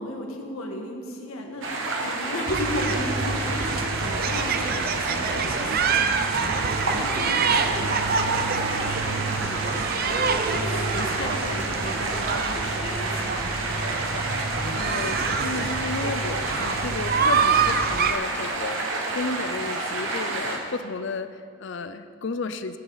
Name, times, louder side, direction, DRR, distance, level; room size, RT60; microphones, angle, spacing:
voice 1, 0.0-6.6 6.9-13.5, left 1 dB, 80° left, 2 dB, 1.5 m, -35 dB
sound 1, 1.6-20.6, right 2 dB, 65° right, 1.4 m, -29 dB
sound 2, 2.5-18.1, right 5 dB, 45° right, 0.5 m, -27 dB
voice 2, 14.7-22.8, left 3 dB, 55° left, 11 dB, 0.5 m, -33 dB
13.5 x 10.0 x 4.0 m, 2.4 s
head